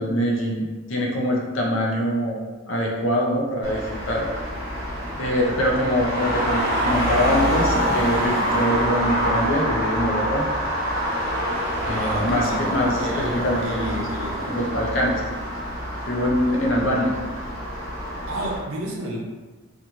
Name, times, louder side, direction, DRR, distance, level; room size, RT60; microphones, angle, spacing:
voice 1, 0.0-2.4 2.7-4.3 5.2-10.5 11.9-14.1 14.5-15.2 16.1-17.1, equal, 65° left, -1 dB, 0.6 m, -24 dB
Traffic noise roadway noise, 3.6-18.6, equal, 45° right, 0.9 m, -26 dB
voice 2, 11.9-12.6 13.0-14.4 18.3-19.2, right 1 dB, 80° right, -2 dB, 0.6 m, -31 dB
2.8 x 2.5 x 2.5 m, 1.3 s
head